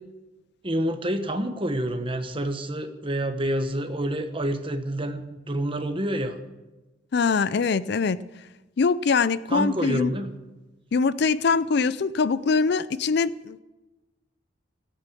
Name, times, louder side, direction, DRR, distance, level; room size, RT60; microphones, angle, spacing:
voice 1, 0.6-6.4 9.5-10.3, right 1 dB, 25° right, 1.1 m, -28 dB
voice 2, 7.1-8.2 8.8-10.1 10.9-13.6, left 4 dB, 55° left, 0.4 m, -23 dB
14.5 x 9.0 x 8.3 m
head